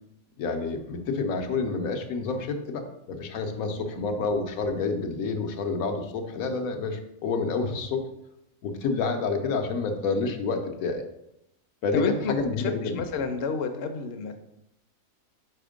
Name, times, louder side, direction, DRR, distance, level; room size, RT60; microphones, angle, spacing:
voice 1, 0.4-8.1 8.6-11.0 11.8-13.0, left 4 dB, 85° left, 5 dB, 1.2 m, -29 dB
voice 2, 3.8-4.2 11.9-14.4, left 5 dB, 55° left, 6 dB, 0.8 m, -30 dB
5.0 x 4.3 x 5.0 m, 0.82 s
omnidirectional pair, 1.5 m